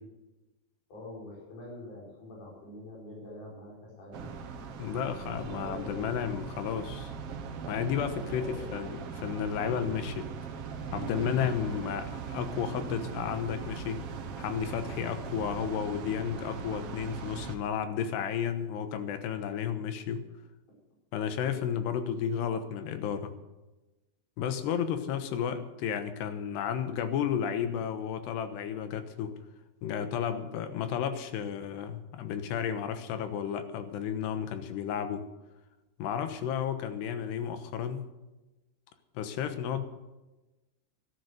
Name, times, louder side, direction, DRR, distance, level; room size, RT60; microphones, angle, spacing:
voice 1, 0.9-4.4 5.5-6.2 8.2-8.9, left 1 dB, 50° left, -4 dB, 6.8 m, -45 dB
sound 1, 4.1-17.6, right 6 dB, 90° right, 1.3 m, -40 dB
voice 2, 4.8-7.1 7.7-10.3 10.9-14.0 14.4-20.2 21.1-23.3 24.4-29.3 29.8-35.3 36.0-38.1 39.1-39.8, left 8 dB, 85° left, 9 dB, 3.3 m, -32 dB
13.0 x 12.5 x 6.6 m, 1.1 s
omnidirectional pair, 4.8 m